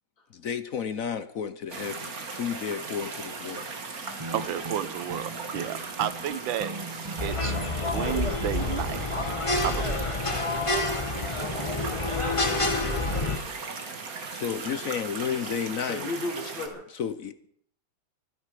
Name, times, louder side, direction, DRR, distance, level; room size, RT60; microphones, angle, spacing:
voice 1, 0.3-3.7 14.3-16.1 16.9-17.3, left 7 dB, 55° left, 1.0 m, -32 dB
sound 1, 1.7-16.7, right 4 dB, 50° right, 2.1 m, -38 dB
sound 2, 4.1-9.1, right 2 dB, 20° right, 0.9 m, -40 dB
voice 2, 4.3-6.7 7.2-9.0 9.6-10.0, right 11 dB, 85° right, 1.6 m, -32 dB
sound 3, 7.2-13.4, left 2 dB, 15° left, 1.6 m, -28 dB
voice 3, 11.2-11.5 13.2-13.8 15.9-16.8, left 2 dB, 90° left, 4.4 m, -36 dB
24.5 x 10.0 x 4.9 m
omnidirectional pair, 2.0 m